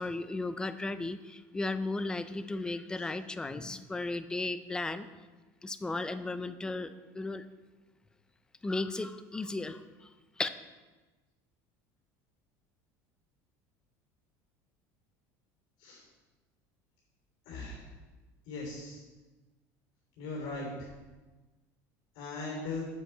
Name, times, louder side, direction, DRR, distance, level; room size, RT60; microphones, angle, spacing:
voice 1, 0.0-5.1 5.6-7.4 8.6-9.8 10.4-10.5, left 2 dB, 10° left, 11 dB, 0.4 m, -35 dB
voice 2, 17.4-17.8 18.4-19.0 20.2-20.9 22.1-22.9, left 3 dB, 70° left, -4 dB, 3.3 m, -39 dB
7.9 x 7.6 x 4.5 m, 1.2 s
cardioid pair, 140°, 8 cm